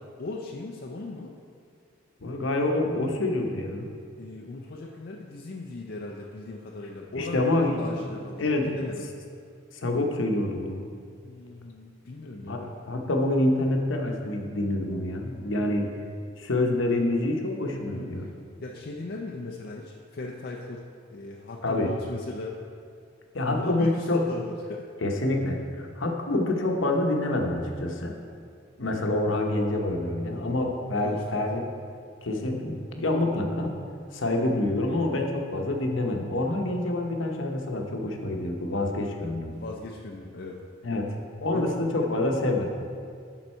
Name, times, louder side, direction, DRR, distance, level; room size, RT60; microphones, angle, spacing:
voice 1, 0.0-1.3 4.2-9.1 11.2-12.7 17.9-18.3 18.6-20.8 21.1-22.6 23.4-24.9 30.3-31.4 39.6-40.6 41.5-41.7, left 2 dB, 50° left, -1 dB, 0.5 m, -38 dB
voice 2, 2.2-3.9 7.2-7.8 8.4-8.7 9.8-10.8 12.5-12.6 12.9-15.9 16.4-18.3 21.6-21.9 23.3-24.2 25.0-28.2 28.8-31.7 32.2-33.7 34.1-39.5 40.8-41.1 41.4-42.7, left 2 dB, 75° left, 2 dB, 0.9 m, -27 dB
11.0 x 4.0 x 4.4 m, 2.3 s
head